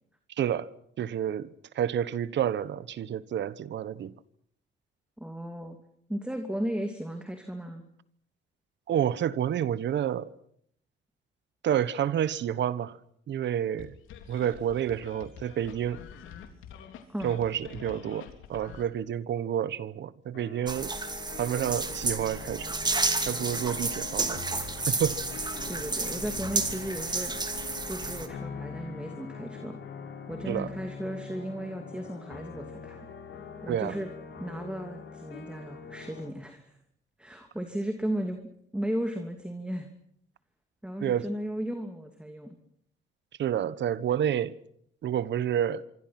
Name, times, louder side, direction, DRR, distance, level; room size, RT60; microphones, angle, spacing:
voice 1, 0.4-0.7 1.0-1.5 1.7-4.1 8.9-10.3 11.6-13.0 13.3-13.9 14.3-16.0 17.2-21.0 21.4-22.8 23.3-24.4 24.9-25.2 30.5-30.7 33.7-34.0 41.0-41.3 43.4-44.5 45.0-45.8, right 10 dB, 65° right, 1.2 m, -29 dB
voice 2, 5.2-5.8 6.1-7.8 17.1-17.4 25.7-27.3 27.9-29.8 30.3-33.1 33.6-34.1 34.4-36.8 37.2-38.4 38.7-39.9 40.8-42.6, right 1 dB, 5° right, 2.7 m, -35 dB
sound 1, 13.8-18.8, left 8 dB, 90° left, 3.4 m, -46 dB
sound 2, 20.3-36.3, left 6 dB, 70° left, 5.1 m, -43 dB
sound 3, 20.7-28.3, right 3 dB, 20° right, 2.7 m, -31 dB
25.5 x 25.0 x 6.0 m
cardioid pair, 90°, 20 cm